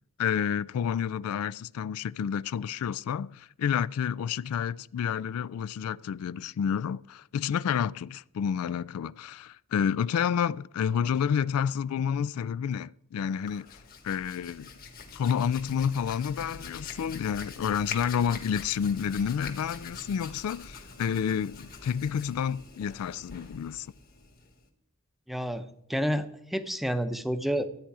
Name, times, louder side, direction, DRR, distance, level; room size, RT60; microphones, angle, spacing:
voice 1, 0.2-13.8 14.0-14.7 15.1-23.9, left 8 dB, 90° left, 0.3 m, -29 dB
Hands, 13.3-24.7, left 4 dB, 45° left, 1.6 m, -44 dB
voice 2, 25.3-25.6 25.9-27.6, equal, ahead, 0.7 m, -29 dB
13.0 x 8.9 x 4.8 m
head